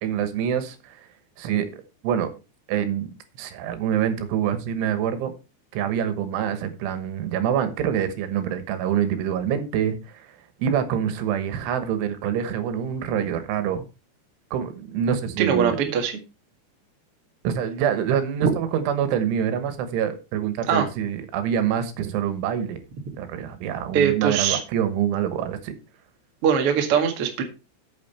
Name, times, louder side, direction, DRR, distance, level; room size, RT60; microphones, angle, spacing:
voice 1, 0.0-1.0 1.4-1.7 2.0-2.3 2.7-5.3 5.7-10.3 10.6-13.9 14.5-15.8 17.5-22.8 23.2-25.7, right 9 dB, 85° right, 3.7 m, -26 dB
voice 2, 15.4-16.1 18.4-18.5 20.7-20.8 23.9-24.6 26.4-27.4, right 7 dB, 55° right, 1.7 m, -21 dB
9.1 x 7.7 x 4.3 m
omnidirectional pair, 5.4 m